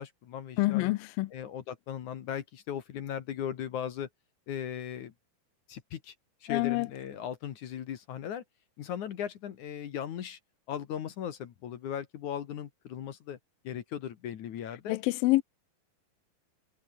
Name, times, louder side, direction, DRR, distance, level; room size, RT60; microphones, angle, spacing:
voice 1, 0.0-0.9 1.3-4.1 4.5-5.1 5.7-6.1 6.4-8.4 8.8-10.4 10.7-13.4 13.6-15.0, left 9 dB, 60° left, 2.5 m, -38 dB
voice 2, 0.6-1.3 6.5-6.9 14.9-15.4, left 19 dB, 80° left, 2.2 m, -26 dB
omnidirectional pair, 4.6 m